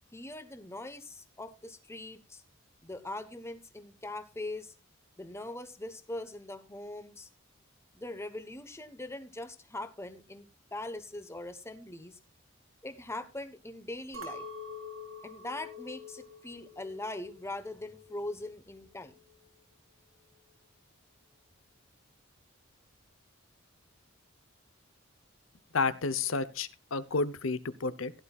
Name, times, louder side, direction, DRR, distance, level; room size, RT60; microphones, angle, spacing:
voice 1, 0.1-2.4 2.8-4.7 5.2-7.3 7.9-12.2 12.8-14.5 15.2-19.2, left 2 dB, 15° left, 10 dB, 1.1 m, -41 dB
Chink clink, 14.1-18.5 18.9-19.5, left 3 dB, 90° right, 2.4 m, -46 dB
voice 2, 25.7-28.1, left 4 dB, 75° left, 15 dB, 0.9 m, -31 dB
16.0 x 11.0 x 2.4 m, 0.29 s
head